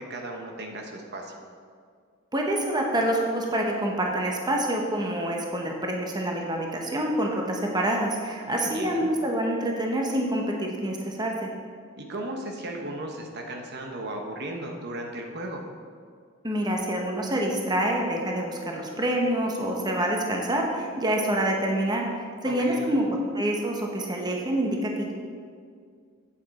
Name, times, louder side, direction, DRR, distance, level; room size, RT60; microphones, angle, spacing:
voice 1, 0.0-1.4 8.5-9.1 12.0-15.6 22.5-23.0, right 1 dB, 55° right, 2 dB, 0.9 m, -35 dB
voice 2, 2.3-11.5 16.4-22.1 22.4-25.1, right 1 dB, 20° right, 0 dB, 0.9 m, -27 dB
8.4 x 8.0 x 4.1 m, 2.1 s
head